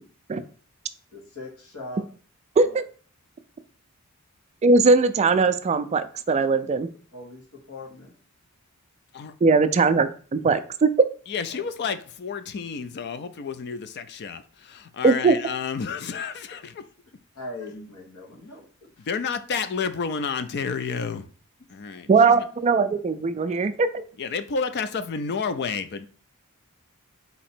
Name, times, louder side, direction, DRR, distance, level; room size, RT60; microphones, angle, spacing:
voice 1, 1.1-2.0 2.6-2.7 7.1-8.1 11.5-11.7 17.3-18.6 19.0-19.1, left 2 dB, 75° left, 1.4 m, -40 dB
voice 2, 4.6-6.9 9.4-10.9 15.0-15.4 22.1-23.9, right 4 dB, 30° right, 0.3 m, -20 dB
voice 3, 11.3-16.8 19.0-21.3 21.7-22.5 24.2-26.1, left 5 dB, 50° left, 0.4 m, -30 dB
4.1 x 2.8 x 4.3 m
head